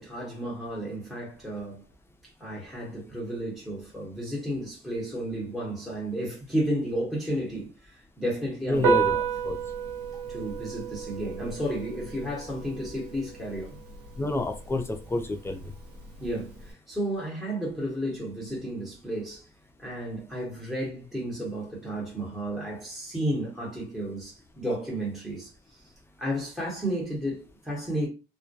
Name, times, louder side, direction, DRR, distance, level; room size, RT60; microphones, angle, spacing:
voice 1, 0.0-1.8 2.4-9.2 10.3-13.8 16.2-19.5 19.8-25.8 26.2-28.1, right 1 dB, ahead, 0.9 m, -32 dB
voice 2, 8.7-9.2 9.4-9.6 14.2-15.6, left 2 dB, 15° left, 0.4 m, -28 dB
Piano, 8.7-16.7, right 6 dB, 85° right, 1.1 m, -32 dB
2.2 x 2.1 x 2.6 m
cardioid pair, 110°, 17 cm